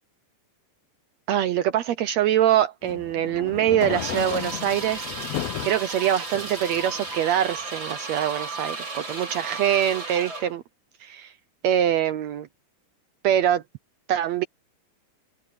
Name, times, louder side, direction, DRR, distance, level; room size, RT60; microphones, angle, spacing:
voice 1, 1.3-5.1 5.6-10.6 11.0-11.3 11.6-12.5 13.2-13.6 14.1-14.4, right 11 dB, 75° right, 1.6 m, -24 dB
sound 1, 2.8-5.8 6.3-7.2, left 13 dB, 80° left, 1.5 m, -34 dB
sound 2, 3.9-10.6, right 3 dB, 35° right, 5.5 m, -34 dB
open air
omnidirectional pair, 4.0 m